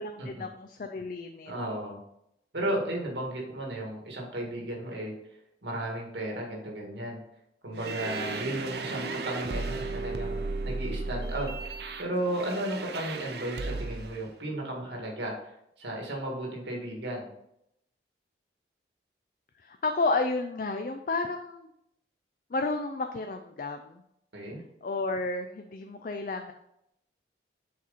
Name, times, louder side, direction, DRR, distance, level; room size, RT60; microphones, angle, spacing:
voice 1, 0.0-1.5 19.6-21.7 22.5-24.0 24.8-26.5, left 3 dB, 50° left, 6 dB, 0.4 m, -31 dB
voice 2, 1.5-2.0 2.5-5.1 5.6-7.2 7.6-17.3 24.3-24.6, right 1 dB, 80° right, -1 dB, 1.9 m, -34 dB
sound 1, 7.7-14.2, right 3 dB, 65° right, 0.7 m, -35 dB
7.3 x 4.4 x 4.1 m, 0.79 s
head